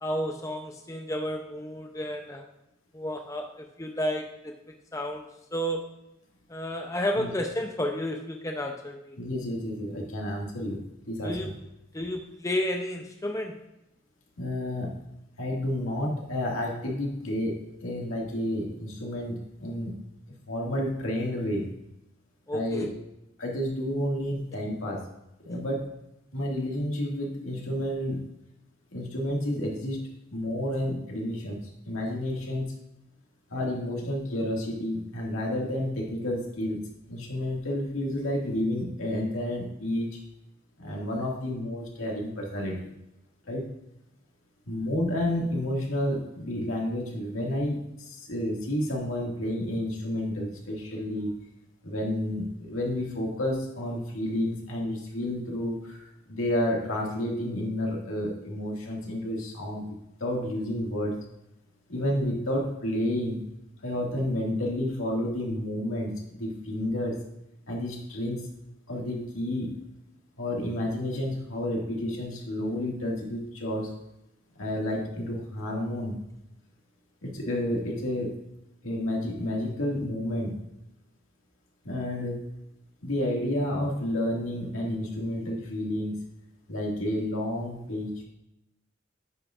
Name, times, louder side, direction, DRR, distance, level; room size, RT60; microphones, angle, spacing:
voice 1, 0.0-2.4 2.9-5.9 6.5-9.2 11.2-11.5 11.9-13.6 22.5-22.9, equal, 15° left, 3 dB, 0.5 m, -32 dB
voice 2, 9.2-10.8 11.1-11.5 14.4-14.9 15.4-20.0 20.5-21.6 22.5-22.9 23.4-25.0 25.4-25.9 26.3-28.2 28.9-32.7 33.5-40.2 40.8-42.8 43.5-43.6 44.7-51.3 51.8-59.8 60.2-61.1 61.9-63.5 63.8-67.2 67.7-68.4 68.9-69.7 70.4-73.9 74.6-76.2 77.2-78.3 78.8-80.5 81.8-82.4 83.0-86.2 86.7-88.2, left 1 dB, 90° left, -2 dB, 2.1 m, -30 dB
9.5 x 7.4 x 2.5 m, 0.88 s
head